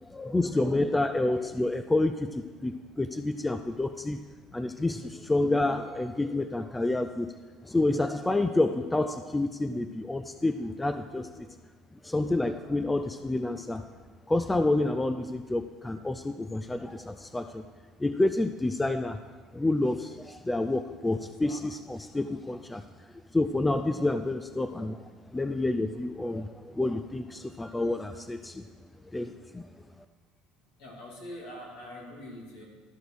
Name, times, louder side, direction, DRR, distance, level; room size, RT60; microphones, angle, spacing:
voice 1, 0.0-4.2 4.5-7.3 7.6-11.5 12.0-13.9 14.3-17.6 18.0-19.2 19.5-22.8 23.3-28.6 29.1-29.7, left 2 dB, 10° left, 9 dB, 0.4 m, -29 dB
voice 2, 30.8-32.6, left 1 dB, 75° left, -1 dB, 2.7 m, -43 dB
13.0 x 5.1 x 6.2 m, 1.5 s
supercardioid pair, 100°, 0 cm